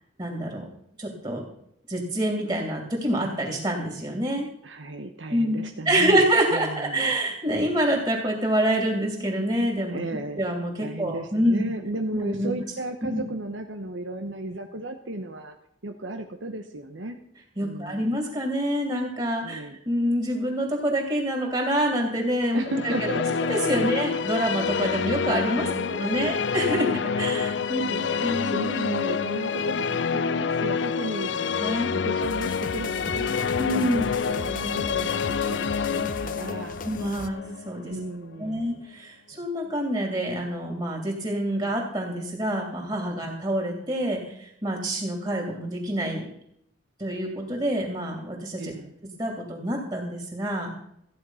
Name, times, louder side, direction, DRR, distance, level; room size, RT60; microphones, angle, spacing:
voice 1, 0.2-0.6 1.0-1.4 1.9-4.5 5.3-5.6 5.8-10.0 10.3-11.6 12.1-12.5 13.1-13.2 17.6-19.6 19.8-22.9 23.5-26.9 27.2-27.8 28.2-28.6 31.6-31.9 33.6-34.1 36.8-37.9 38.4-46.3 47.0-48.7 49.2-50.7, right 1 dB, 25° right, 1 dB, 2.9 m, -26 dB
voice 2, 4.6-7.2 9.9-10.5 10.8-15.5 15.8-17.2 17.6-18.1 19.4-19.8 22.5-23.4 23.8-24.0 25.6-31.5 31.9-33.4 33.7-35.2 35.5-36.8 37.8-38.6 48.6-48.9, right 1 dB, 85° right, 4 dB, 1.1 m, -35 dB
sound 1, 22.6-38.6, left 6 dB, 70° left, 0.5 m, -28 dB
sound 2, 32.2-37.3, left 3 dB, 45° left, 0.8 m, -38 dB
15.0 x 9.6 x 5.7 m, 0.74 s
head